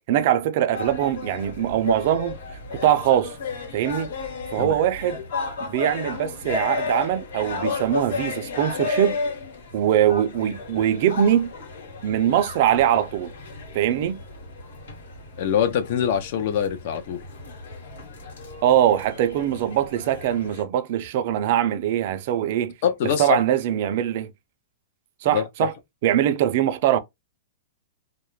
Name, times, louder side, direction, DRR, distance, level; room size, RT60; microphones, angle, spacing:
voice 1, 0.1-2.4 2.7-3.4 3.7-4.1 4.5-5.2 5.7-9.2 9.7-11.5 12.0-13.3 13.7-14.2 18.6-22.7 23.2-24.3 25.2-25.7 26.0-27.0, right 11 dB, 45° right, 0.3 m, -22 dB
sound 1, 0.7-20.6, left 4 dB, 85° left, 1.3 m, -33 dB
voice 2, 15.4-17.2 22.8-23.4 25.3-25.4, left 8 dB, 45° left, 0.5 m, -23 dB
2.3 x 2.0 x 3.0 m
hypercardioid pair, 165°, 0 cm